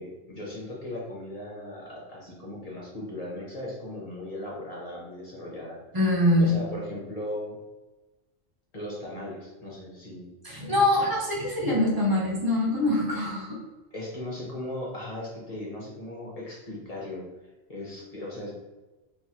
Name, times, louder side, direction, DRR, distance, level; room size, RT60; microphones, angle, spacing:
voice 1, 0.0-6.1 6.4-7.6 8.7-10.3 13.9-17.3 17.7-18.5, left 1 dB, 35° left, -4 dB, 0.7 m, -37 dB
voice 2, 5.9-6.6 10.4-13.6, left 1 dB, 25° right, -4 dB, 0.5 m, -24 dB
3.3 x 2.1 x 2.7 m, 1.1 s
omnidirectional pair, 1.3 m